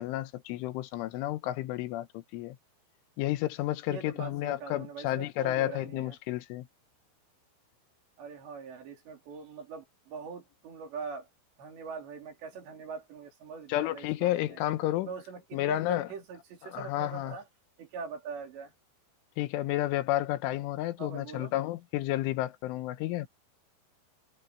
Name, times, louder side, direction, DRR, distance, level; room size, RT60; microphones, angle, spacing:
voice 1, 0.0-2.6 3.2-6.7 13.7-15.1 15.5-16.1 16.7-17.4 19.4-23.3, left 15 dB, 90° left, 3.5 m, -31 dB
voice 2, 3.9-6.1 8.2-11.3 11.6-14.6 15.1-17.4 17.8-18.7 21.0-21.5, right 5 dB, 65° right, 5.9 m, -42 dB
omnidirectional pair, 5.5 m